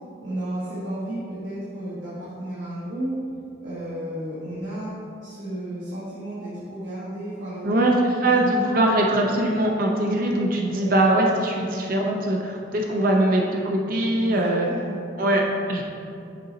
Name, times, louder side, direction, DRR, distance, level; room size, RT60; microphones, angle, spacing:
voice 1, 0.2-3.2 3.6-4.9 5.2-7.7 8.2-8.5 10.7-10.9 14.1-14.9, right 1 dB, 80° right, -10 dB, 1.3 m, -33 dB
voice 2, 7.6-14.7 15.2-15.4 15.7-15.8, right 1 dB, 50° right, 0 dB, 0.5 m, -21 dB
6.5 x 4.0 x 3.9 m, 2.5 s
head